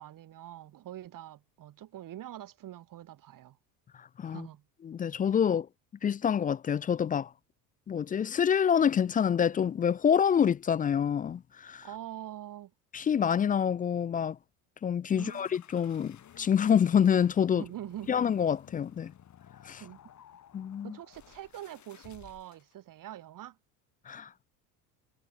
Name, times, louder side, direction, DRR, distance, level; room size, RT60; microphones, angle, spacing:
voice 1, 0.0-3.6 4.2-4.6 11.8-12.7 15.1-15.5 17.5-18.1 19.8-20.0 20.8-23.6, right 12 dB, 50° right, 5.5 m, -44 dB
voice 2, 4.0-4.5 4.8-5.7 6.0-7.3 7.9-11.9 12.9-14.4 14.8-17.6 18.1-19.1 19.6-19.8 20.5-21.0 24.1-24.3, left 8 dB, 20° left, 0.4 m, -27 dB
sound 1, 15.2-22.7, left 10 dB, 40° left, 5.8 m, -55 dB
supercardioid pair, 95°, 41 cm